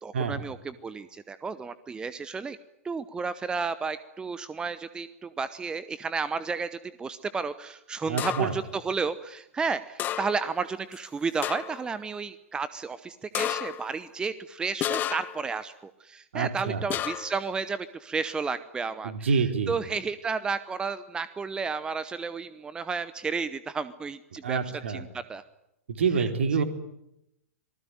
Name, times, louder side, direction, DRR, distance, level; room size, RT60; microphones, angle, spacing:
voice 1, 0.0-2.6 2.8-19.3 19.7-24.6 24.9-25.4 26.2-26.3 26.6-26.7, right 5 dB, 10° right, 15 dB, 0.9 m, -32 dB
voice 2, 8.1-8.5 16.3-16.9 19.0-19.7 24.4-25.0 25.9-26.6, right 5 dB, 60° right, 7 dB, 3.3 m, -27 dB
sound 1, 8.2-8.7 10.0-10.6 10.9-11.0 11.4-11.9 13.3-13.9 14.8-15.5 16.9-17.4, left 11 dB, 25° left, 1.0 m, -32 dB
26.5 x 19.5 x 9.3 m, 0.84 s
figure-of-eight pair, 105°, 7 cm